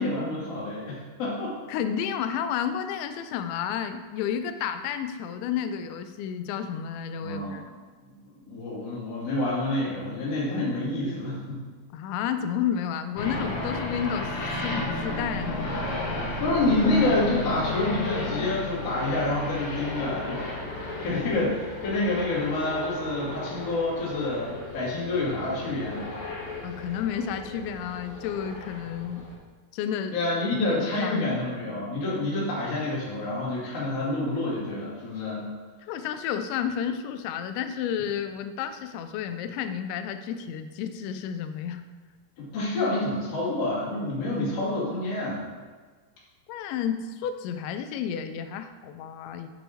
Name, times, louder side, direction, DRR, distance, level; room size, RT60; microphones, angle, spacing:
voice 1, 0.0-1.5 7.2-7.6 8.4-11.6 16.4-20.5 21.0-26.1 30.1-35.5 42.4-45.4, left 2 dB, 40° left, -7 dB, 2.8 m, -28 dB
voice 2, 1.7-7.6 11.9-14.3 14.6-16.0 26.6-29.3 29.7-30.1 30.7-31.3 35.9-41.8 46.5-49.5, left 8 dB, 85° left, 9 dB, 2.9 m, -31 dB
sound 1, 13.2-29.4, left 2 dB, 60° left, 1.8 m, -34 dB
9.2 x 5.4 x 4.4 m, 1.4 s
omnidirectional pair, 5.2 m